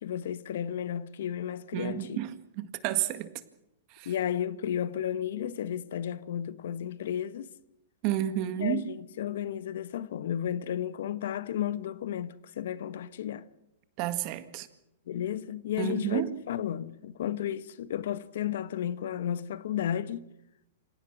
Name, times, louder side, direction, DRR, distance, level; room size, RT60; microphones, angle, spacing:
voice 1, 0.0-2.2 4.0-7.5 8.6-13.4 15.1-20.2, left 10 dB, 70° left, 1.2 m, -33 dB
voice 2, 1.7-3.3 3.9-4.1 8.0-8.9 14.0-14.7 15.8-16.3, right 13 dB, 45° right, 1.8 m, -31 dB
27.0 x 17.5 x 6.1 m
hypercardioid pair, 120°, 0 cm